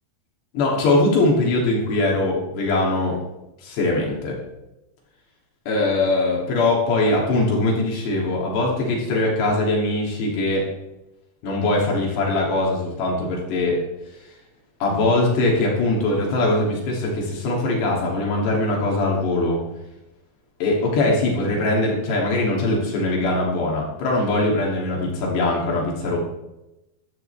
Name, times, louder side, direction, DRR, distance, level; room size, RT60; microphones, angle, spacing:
voice 1, 0.5-3.2 3.6-4.4 5.7-10.7 11.4-13.8 14.8-19.6 20.6-26.2, left 2 dB, 85° left, -2 dB, 5.1 m, -21 dB
15.0 x 12.5 x 3.5 m, 0.95 s
omnidirectional pair, 4.7 m